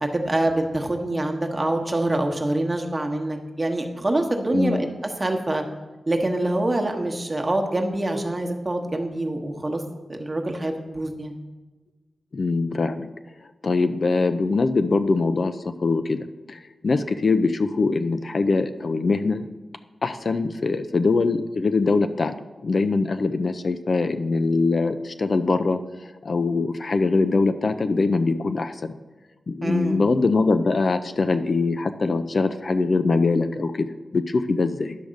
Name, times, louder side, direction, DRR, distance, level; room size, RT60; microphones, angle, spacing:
voice 1, 0.0-4.9 5.2-5.6 6.1-9.8 10.1-11.3 29.6-30.0, right 1 dB, 30° right, 3 dB, 1.1 m, -25 dB
voice 2, 4.5-4.8 12.3-13.1 13.6-19.5 20.0-22.3 22.6-29.0 29.5-35.0, left 3 dB, 55° left, 9 dB, 0.4 m, -23 dB
10.0 x 3.5 x 6.3 m, 1.2 s
cardioid pair, 65°, 0 cm